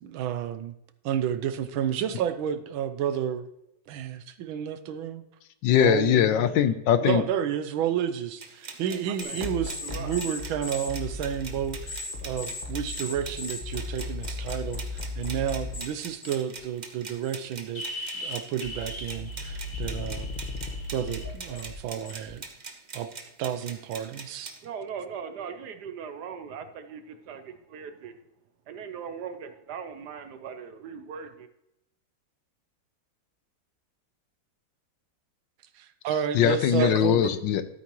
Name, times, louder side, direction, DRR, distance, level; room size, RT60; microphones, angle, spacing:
voice 1, 0.0-0.7 1.0-3.5 3.9-5.2 5.7-6.5 7.0-17.8 18.1-20.3 20.9-22.4 22.9-23.1 23.4-24.5 35.8-37.2, right 9 dB, 85° right, 11 dB, 1.5 m, -31 dB
voice 2, 5.6-7.2 36.3-37.7, left 10 dB, 75° left, 12 dB, 1.3 m, -21 dB
sound 1, 8.4-24.6, right 4 dB, 50° right, 0.5 m, -43 dB
voice 3, 8.9-9.6 9.8-10.1 24.6-28.1 28.7-31.5 36.8-36.9, right 6 dB, 65° right, 9 dB, 1.1 m, -39 dB
sound 2, 9.2-15.9 16.2-16.6 17.2-17.3 17.7-22.3, left 2 dB, 30° left, 1.3 m, -36 dB
13.0 x 8.3 x 3.0 m, 0.85 s
omnidirectional pair, 2.2 m